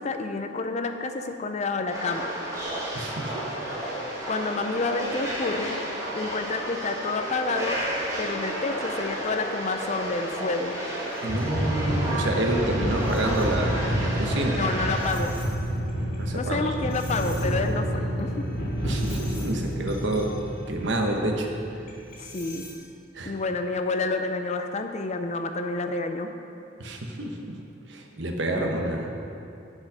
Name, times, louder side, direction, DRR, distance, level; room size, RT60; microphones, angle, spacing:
voice 1, 0.0-2.3 4.3-5.8 6.1-7.8 8.2-10.8 14.6-15.4 16.3-18.5 22.2-22.7 23.3-26.3, left 3 dB, 35° left, 6 dB, 0.5 m, -29 dB
sound 1, 1.9-15.1, right 1 dB, 15° right, 1.9 m, -32 dB
voice 2, 2.9-3.6 11.2-14.6 16.2-16.7 18.8-20.3 20.7-21.5 23.1-23.3 26.8-27.6 27.9-29.1, right 1 dB, 65° right, 2 dB, 1.1 m, -28 dB
sound 2, 10.1-10.2 11.1-22.7, equal, 55° left, 2.2 m, -29 dB
10.5 x 5.4 x 6.2 m, 2.6 s
head